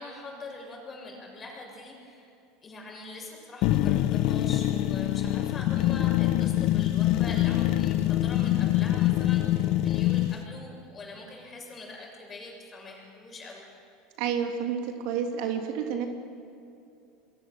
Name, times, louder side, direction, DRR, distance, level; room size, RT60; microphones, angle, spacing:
voice 1, 0.0-2.3 2.6-13.6, left 2 dB, 25° left, 0 dB, 7.2 m, -43 dB
sound 1, 3.6-10.4, left 14 dB, 60° left, 1.0 m, -24 dB
voice 2, 14.2-16.1, right 7 dB, 65° right, 3 dB, 2.9 m, -30 dB
28.5 x 22.0 x 6.9 m, 2.7 s
supercardioid pair, 125°, 0 cm